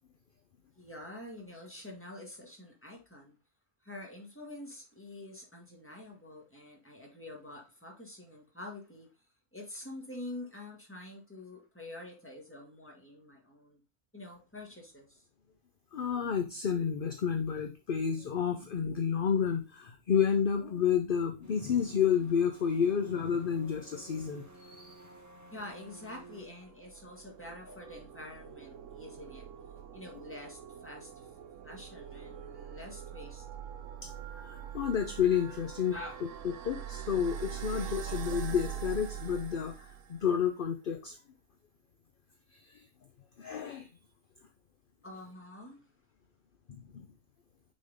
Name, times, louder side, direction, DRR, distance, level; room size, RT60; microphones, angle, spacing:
voice 1, 0.8-3.4 3.8-9.1 9.5-13.8 14.1-15.2 25.5-29.5 29.9-31.3 31.6-33.5 35.9-36.2 37.7-38.2 45.0-45.8, left 1 dB, 10° left, 0 dB, 1.8 m, -47 dB
voice 2, 15.9-24.9 34.0-34.1 34.4-36.0 36.6-41.2 42.7-42.8 43.4-43.9 46.7-46.8, left 7 dB, 50° left, 5 dB, 0.8 m, -30 dB
sound 1, 21.4-26.5, right 1 dB, 15° right, 1.2 m, -53 dB
sound 2, 26.2-40.4, right 9 dB, 80° right, 1.0 m, -43 dB
6.3 x 4.3 x 3.7 m, 0.30 s
omnidirectional pair, 1.3 m